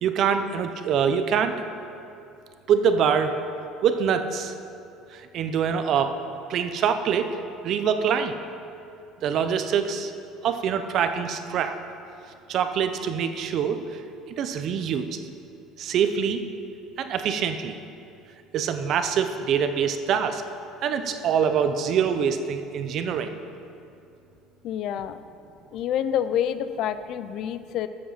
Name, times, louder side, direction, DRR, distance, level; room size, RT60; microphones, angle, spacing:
voice 1, 0.0-1.5 2.7-3.4 3.8-4.5 5.3-6.1 6.5-7.3 7.6-8.4 9.2-10.1 10.4-11.7 12.5-13.8 14.4-15.1 15.8-16.4 17.0-17.8 18.5-20.4 20.8-23.4, right 7 dB, 45° right, 9 dB, 0.7 m, -24 dB
voice 2, 24.6-25.2 25.7-27.9, left 9 dB, 50° left, 12 dB, 0.4 m, -27 dB
12.5 x 7.5 x 5.7 m, 2.6 s
cardioid pair, 160°, 0 cm